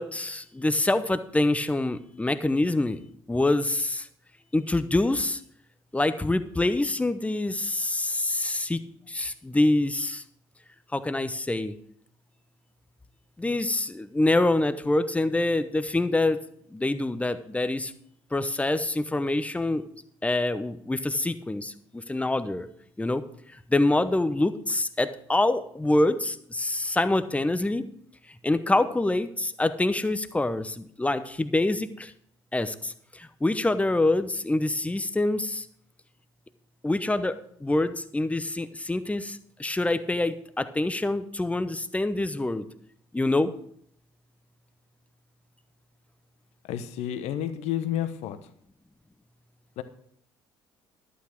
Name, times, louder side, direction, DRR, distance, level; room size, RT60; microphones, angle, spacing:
voice 1, 0.0-3.0 3.3-4.1 4.5-5.4 5.9-8.8 9.1-10.2 10.9-11.7 13.4-16.4 16.7-17.9 18.3-19.8 20.2-22.7 23.0-23.2 23.7-27.8 28.4-32.1 32.5-35.7 36.8-42.7 43.1-43.5, left 2 dB, 10° left, 12 dB, 0.9 m, -26 dB
voice 2, 46.7-48.4 49.8-49.9, left 11 dB, 60° left, 11 dB, 1.0 m, -30 dB
11.5 x 8.5 x 4.5 m, 0.66 s
figure-of-eight pair, 55°, 12 cm